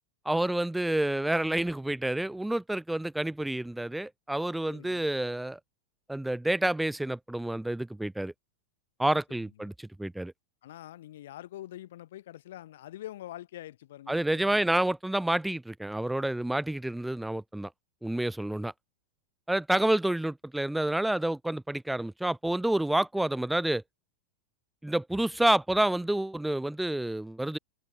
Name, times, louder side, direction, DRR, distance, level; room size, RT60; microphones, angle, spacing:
voice 1, 0.2-5.6 6.1-8.3 9.0-10.3 14.1-17.7 18.0-18.7 19.5-23.8 24.8-27.6, right 1 dB, 5° right, 1.0 m, -29 dB
voice 2, 4.7-5.1 9.0-9.7 10.6-14.7 15.3-15.6, left 13 dB, 55° left, 5.0 m, -45 dB
open air
figure-of-eight pair, 90°, 0 cm